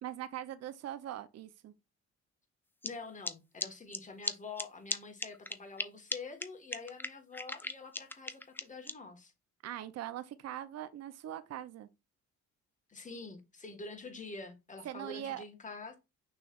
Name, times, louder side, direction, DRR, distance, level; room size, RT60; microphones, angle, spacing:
voice 1, 0.0-1.7 9.6-11.9 14.8-15.4, right 11 dB, 60° right, 0.5 m, -41 dB
voice 2, 2.8-9.3 12.9-16.0, left 3 dB, 25° left, 1.4 m, -46 dB
sound 1, 2.8-2.9 3.2-3.3 3.6-3.7 3.9-4.0 4.2-4.3 4.6-4.7 4.9-5.0 5.2-5.8 6.1-6.2 6.4-6.5 6.7-8.9, left 2 dB, 5° left, 0.4 m, -35 dB
6.1 x 3.2 x 2.4 m
cardioid pair, 90°, 30 cm